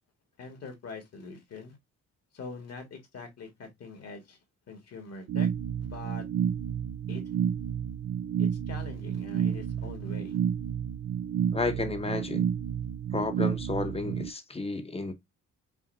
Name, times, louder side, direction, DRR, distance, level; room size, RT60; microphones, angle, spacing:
voice 1, 0.4-1.8 2.3-4.4 4.7-5.5 5.8-6.3 7.1-7.2 8.4-10.4, left 4 dB, 55° left, 1.8 m, -43 dB
sound 1, 5.3-14.3, right 9 dB, 65° right, 0.5 m, -30 dB
voice 2, 11.5-12.4 13.1-15.1, left 3 dB, 20° left, 0.9 m, -32 dB
5.5 x 2.5 x 2.6 m
cardioid pair, 90°, 30 cm